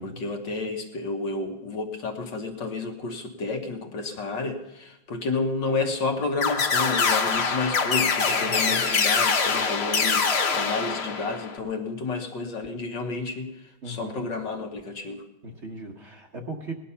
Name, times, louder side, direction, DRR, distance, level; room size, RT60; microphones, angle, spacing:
voice 1, 0.0-15.2, left 3 dB, 65° left, 3 dB, 1.9 m, -31 dB
sound 1, 6.4-11.6, left 5 dB, 45° left, 0.9 m, -24 dB
voice 2, 8.4-8.8 13.8-14.3 15.4-16.7, right 1 dB, 45° right, 2 dB, 1.2 m, -38 dB
18.0 x 11.0 x 5.6 m, 0.98 s
omnidirectional pair, 2.1 m